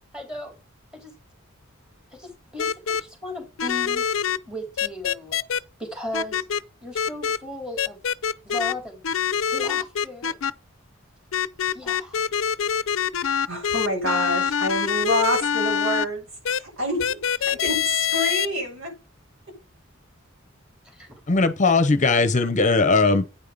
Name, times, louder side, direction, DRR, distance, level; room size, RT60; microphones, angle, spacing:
voice 1, 0.1-0.5 0.9-1.1 2.1-4.0 4.5-5.4 5.8-6.5 6.8-8.0 8.4-9.0 9.5-10.4 11.7-12.2 20.8-21.1, left 1 dB, 5° right, 3.6 m, -36 dB
sound 1, 2.6-3.0 3.6-4.4 4.8-5.6 6.1-6.6 6.9-7.4 7.8-8.7 9.0-10.5 11.3-16.0 16.4-16.6 17.0-18.5, left 8 dB, 70° left, 0.5 m, -24 dB
voice 2, 13.5-17.2 17.5-18.9 23.0-23.2, equal, 70° right, 5.8 m, -27 dB
voice 3, 21.3-23.3, left 3 dB, 40° left, 0.9 m, -19 dB
9.0 x 5.6 x 5.1 m
head